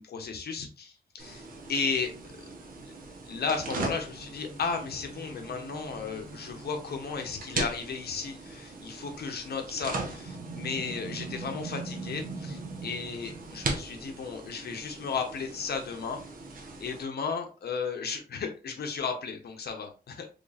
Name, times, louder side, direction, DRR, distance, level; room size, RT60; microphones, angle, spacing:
voice 1, 0.1-2.1 3.2-16.2 16.8-20.3, left 5 dB, 70° left, 4 dB, 0.7 m, -34 dB
sound 1, 1.2-17.0, right 3 dB, 55° right, 0.8 m, -39 dB
4.0 x 3.2 x 2.4 m, 0.32 s
wide cardioid pair, 175°, 17 cm